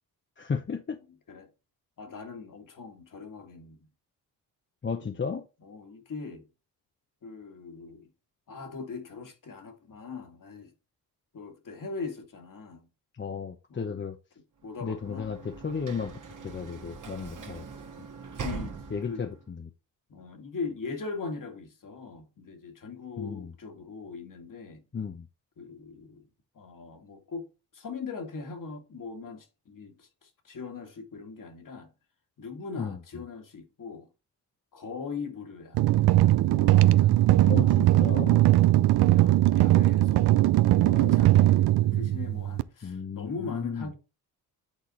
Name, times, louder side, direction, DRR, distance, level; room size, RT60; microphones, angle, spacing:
voice 1, 0.4-1.0 4.8-5.4 13.1-14.2 14.8-16.1 16.4-17.6 18.9-19.7 23.2-23.5 24.9-25.3 32.8-33.0 37.5-38.4 40.8-41.2 41.9-42.0 42.8-43.9, left 6 dB, 30° left, 0.8 m, -34 dB
voice 2, 2.0-3.9 5.0-5.2 5.6-6.5 7.2-8.1 8.5-10.7 11.3-12.9 13.7-14.0 14.6-15.3 17.2-17.5 18.4-18.8 19.0-19.2 20.1-24.8 25.6-26.3 26.5-27.5 27.7-31.9 32.4-34.1 34.7-35.8 36.5-40.5 41.0-43.9, left 4 dB, 50° left, 2.0 m, -40 dB
Sliding door / Slam, 14.7-19.4, right 5 dB, 50° right, 1.6 m, -41 dB
sound 1, 35.8-42.6, right 15 dB, 70° right, 0.5 m, -20 dB
8.9 x 4.1 x 4.0 m
supercardioid pair, 55°, 41 cm